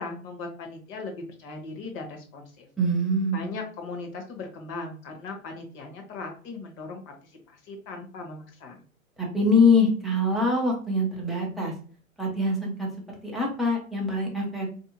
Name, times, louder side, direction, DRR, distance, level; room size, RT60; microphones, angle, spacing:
voice 1, 0.0-2.7 3.3-8.8, left 3 dB, 30° left, 3 dB, 1.0 m, -38 dB
voice 2, 2.8-3.5 9.2-11.7 12.2-12.9 13.2-14.7, left 2 dB, ahead, -3 dB, 0.4 m, -24 dB
4.0 x 2.7 x 2.7 m, 0.42 s
figure-of-eight pair, 110°, 41 cm